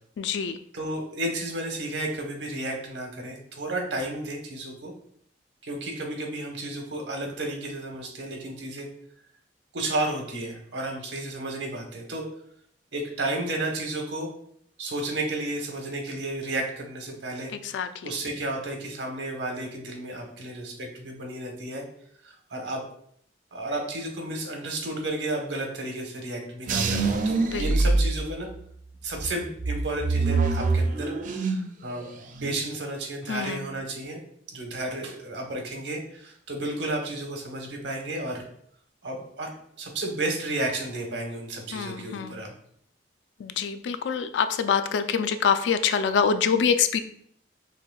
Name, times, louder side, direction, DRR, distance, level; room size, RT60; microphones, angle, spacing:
voice 1, 0.2-0.6 17.7-18.1 27.4-27.7 33.3-33.7 41.7-42.4 43.4-47.0, left 6 dB, 85° left, 10 dB, 0.3 m, -25 dB
voice 2, 0.7-4.9 5.6-8.9 9.7-12.2 12.9-14.3 14.8-17.5 18.0-21.8 22.2-22.8 23.5-28.5 29.0-31.1 31.4-34.2 34.5-38.5 39.0-39.5 39.8-42.5, right 2 dB, 90° right, 3 dB, 1.0 m, -32 dB
sound 1, 26.7-28.7 29.2-31.8 32.1-32.6, right 3 dB, 45° right, 0.4 m, -25 dB
5.7 x 3.0 x 2.3 m, 0.65 s
head